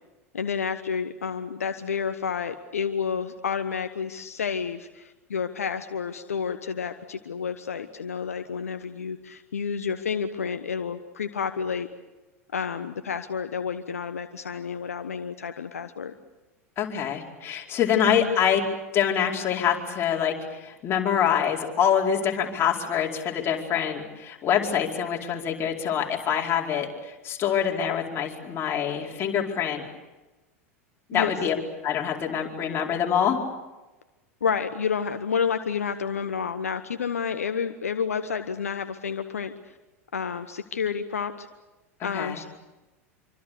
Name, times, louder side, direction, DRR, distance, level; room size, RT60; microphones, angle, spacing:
voice 1, 0.3-11.9 12.5-16.1 18.1-18.3 31.1-31.3 34.4-39.7 40.1-41.5 42.0-42.4, left 6 dB, 75° left, 9 dB, 1.1 m, -30 dB
voice 2, 16.8-18.6 18.9-29.8 31.1-31.6 31.8-33.4 42.0-42.4, left 8 dB, 30° left, 0 dB, 4.8 m, -25 dB
26.5 x 25.0 x 6.8 m, 1.1 s
figure-of-eight pair, 85°, 8 cm